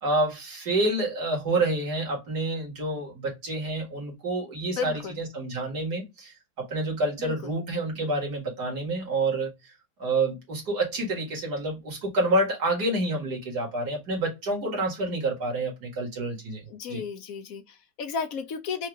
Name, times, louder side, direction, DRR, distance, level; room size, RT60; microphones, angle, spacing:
voice 1, 0.0-9.7 10.0-16.6 16.9-17.0, right 2 dB, 60° right, 2.5 m, -28 dB
voice 2, 4.8-5.2 7.2-7.3 16.7-18.9, left 6 dB, 60° left, 1.0 m, -33 dB
4.7 x 2.8 x 3.5 m
omnidirectional pair, 2.0 m